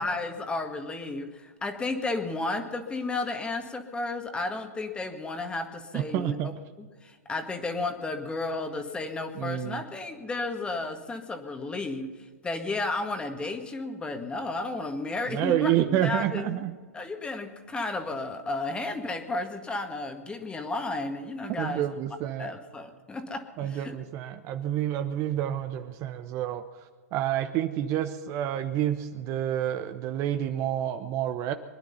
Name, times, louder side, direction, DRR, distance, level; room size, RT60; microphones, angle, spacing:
voice 1, 0.0-6.5 6.8-16.6 16.9-21.9 22.4-23.9, left 2 dB, 10° left, 6 dB, 1.9 m, -33 dB
voice 2, 5.9-6.5 9.3-9.8 15.3-16.7 21.6-22.5 23.6-26.6 27.1-31.5, right 11 dB, 35° right, 9 dB, 0.9 m, -29 dB
23.5 x 10.5 x 5.7 m, 1.5 s
hypercardioid pair, 120°, 8 cm